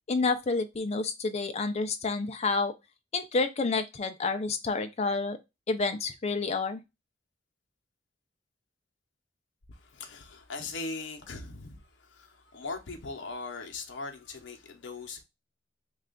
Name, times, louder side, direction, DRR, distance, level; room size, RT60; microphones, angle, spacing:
voice 1, 0.1-2.7 3.1-5.4 5.7-6.8, left 3 dB, 35° left, 0.5 m, -29 dB
voice 2, 9.7-15.2, left 3 dB, 80° left, 0.7 m, -40 dB
3.3 x 2.3 x 3.7 m
head